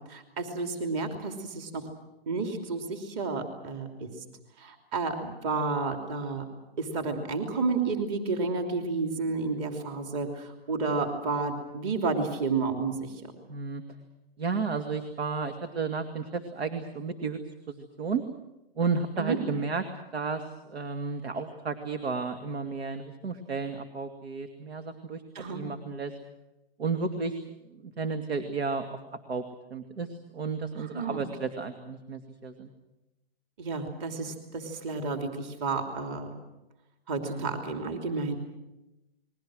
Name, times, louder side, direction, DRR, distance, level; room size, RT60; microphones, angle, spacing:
voice 1, 0.0-1.8 2.3-4.1 4.6-6.4 6.8-13.3 19.2-19.4 25.3-25.6 30.8-31.2 33.6-36.3 37.1-38.4, right 4 dB, 30° right, 4 dB, 3.1 m, -31 dB
voice 2, 13.5-13.8 14.4-17.4 17.7-18.2 18.8-19.8 20.1-26.1 26.8-27.4 27.7-29.0 29.3-29.4 29.7-32.7 37.2-37.6, right 4 dB, 85° right, 7 dB, 2.5 m, -33 dB
29.5 x 21.5 x 6.4 m, 0.97 s
hypercardioid pair, 150°, 31 cm